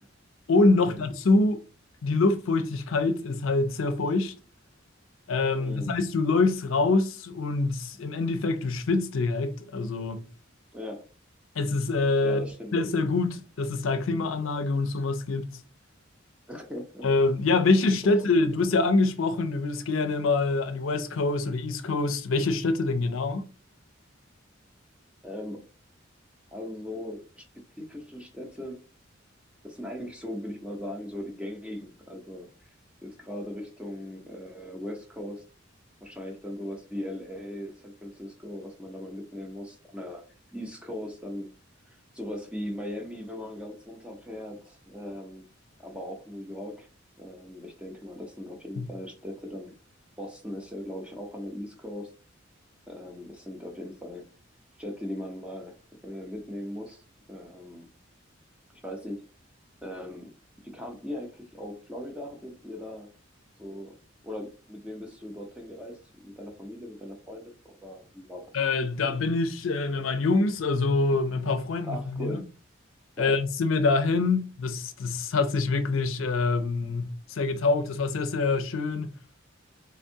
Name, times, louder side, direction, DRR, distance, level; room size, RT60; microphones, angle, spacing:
voice 1, 0.5-1.6 2.0-4.3 5.3-10.2 11.6-12.5 12.7-15.5 17.0-23.4 48.8-48.9 68.5-72.4 73.2-79.1, left 3 dB, 85° left, 0.5 m, -25 dB
voice 2, 5.6-5.9 10.7-11.0 12.2-12.7 16.5-17.1 18.0-18.5 25.2-25.6 26.5-27.4 27.8-28.8 29.6-32.7 33.0-35.4 36.0-40.2 40.5-41.5 41.9-45.5 45.8-46.9 47.2-49.7 50.2-52.1 52.9-54.2 54.8-55.8 56.0-57.0 57.3-57.9 58.8-59.2 59.8-60.3 60.6-63.1 63.6-63.9 64.2-68.5 71.8-72.4 73.2-73.4, left 1 dB, 5° right, 0.6 m, -39 dB
3.4 x 3.4 x 2.7 m
head